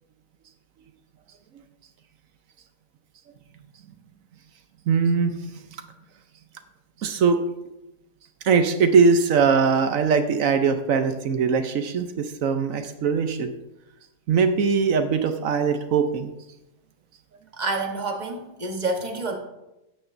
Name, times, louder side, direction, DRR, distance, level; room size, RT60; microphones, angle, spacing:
voice 1, 4.9-5.3 7.0-7.4 8.4-13.5 14.3-16.3, right 5 dB, 65° right, 8 dB, 1.0 m, -21 dB
voice 2, 17.5-19.3, right 3 dB, 30° right, 3 dB, 1.1 m, -28 dB
12.5 x 9.0 x 2.6 m, 0.92 s
omnidirectional pair, 1.7 m